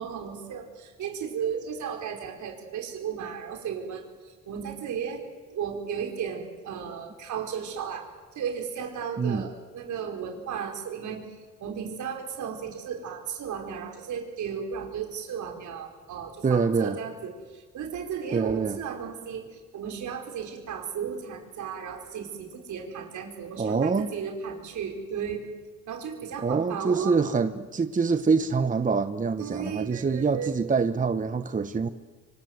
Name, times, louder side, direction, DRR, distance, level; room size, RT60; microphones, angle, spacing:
voice 1, 0.0-5.2 5.5-25.5 25.9-27.2 29.4-30.5, right 7 dB, 75° right, 3 dB, 4.9 m, -35 dB
voice 2, 9.2-9.5 16.4-17.0 18.3-18.8 23.6-24.1 26.4-31.9, right 5 dB, 25° right, 11 dB, 1.0 m, -25 dB
25.5 x 25.0 x 8.1 m, 1.3 s
cardioid pair, 90°, 30 cm